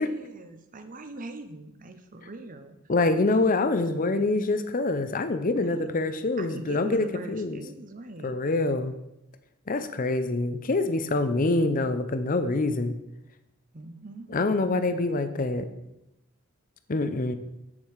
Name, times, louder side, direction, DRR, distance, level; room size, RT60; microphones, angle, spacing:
voice 1, 0.0-2.8 5.5-5.9 6.4-8.4 11.0-11.5 13.7-14.3, right 2 dB, 40° right, 8 dB, 0.8 m, -42 dB
voice 2, 2.9-7.6 8.2-8.9 9.7-13.0 14.3-15.7 16.9-17.3, left 2 dB, 40° left, 10 dB, 0.6 m, -25 dB
8.5 x 7.2 x 4.8 m, 0.87 s
head